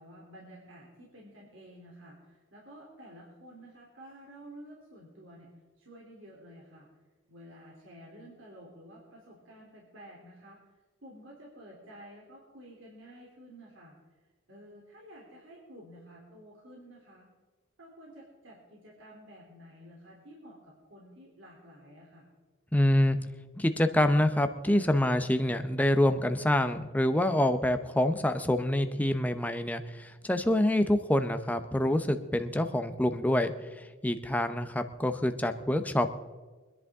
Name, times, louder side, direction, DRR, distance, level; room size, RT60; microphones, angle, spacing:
voice 1, 0.0-5.5 5.8-6.9 7.3-10.6 11.0-17.3 17.8-22.3, equal, 65° right, -3 dB, 3.1 m, -51 dB
voice 2, 22.7-23.3 23.6-33.5 34.0-36.2, left 1 dB, 10° left, 8 dB, 0.7 m, -26 dB
24.0 x 11.0 x 3.6 m, 1.4 s
head